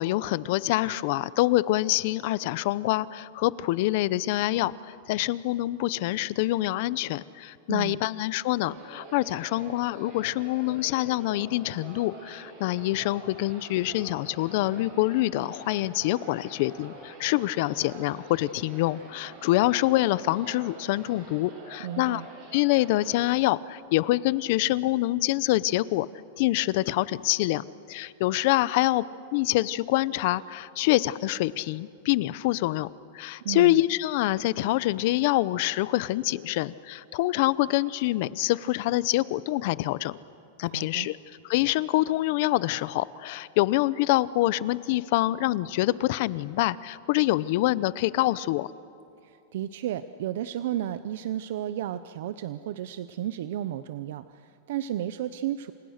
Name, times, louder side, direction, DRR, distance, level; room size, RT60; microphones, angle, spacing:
voice 1, 0.0-22.2 22.5-26.1 26.4-29.0 29.3-32.9 33.1-40.2 40.6-41.2 41.4-48.7, left 17 dB, 50° left, 19 dB, 0.7 m, -26 dB
voice 2, 7.7-8.0 21.8-22.3 33.4-33.8 40.7-41.1 49.2-55.7, right 11 dB, 65° right, 13 dB, 0.7 m, -33 dB
sound 1, 8.6-23.3, right 3 dB, 40° right, 7.6 m, -46 dB
29.5 x 27.5 x 6.6 m, 2.6 s
supercardioid pair, 160°, 0 cm